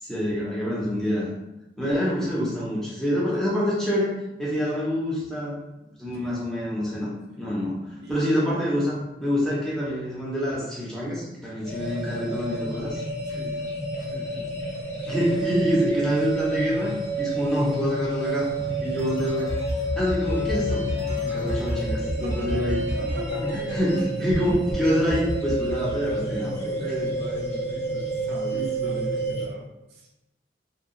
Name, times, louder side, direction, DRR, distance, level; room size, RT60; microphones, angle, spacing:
voice 1, 0.0-1.3 1.8-5.6 6.0-7.1 7.4-13.0 15.1-18.5 18.8-19.6 19.9-20.8 21.2-22.8 23.4-26.8 28.5-29.0, equal, 5° left, -7 dB, 0.6 m, -26 dB
voice 2, 6.1-6.5 7.3-7.5 8.0-8.2 13.3-13.6 13.9-14.5 15.0-15.1 22.2-23.6 24.0-25.1 26.8-30.1, equal, 65° right, -1 dB, 0.5 m, -39 dB
sound 1, 11.6-29.5, right 1 dB, 60° left, 0.6 m, -30 dB
sound 2, 18.6-24.0 24.3-24.7 25.1-26.5, right 1 dB, 30° right, 0.7 m, -31 dB
2.8 x 2.2 x 2.5 m, 0.93 s
head